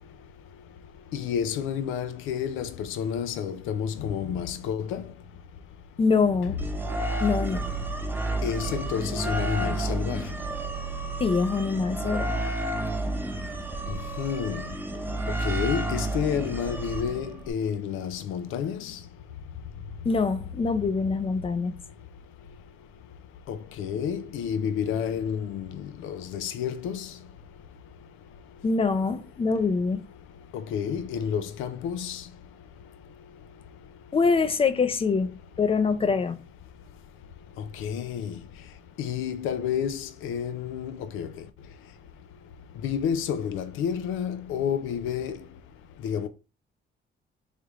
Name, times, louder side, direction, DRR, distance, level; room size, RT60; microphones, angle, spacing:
voice 1, 1.1-5.1 8.4-10.2 13.9-14.6 15.4-19.0 23.5-27.1 30.5-32.2 37.8-38.3 39.0-41.3 42.8-45.4 46.0-46.3, left 8 dB, 90° left, 0.5 m, -30 dB
voice 2, 6.0-6.6 7.2-7.7 11.2-12.4 20.0-21.8 28.6-30.0 34.1-36.4, left 4 dB, 30° left, 0.4 m, -24 dB
sound 1, 6.6-17.5, right 2 dB, 10° right, 0.7 m, -30 dB
3.6 x 3.3 x 3.0 m
cardioid pair, 90°, 20 cm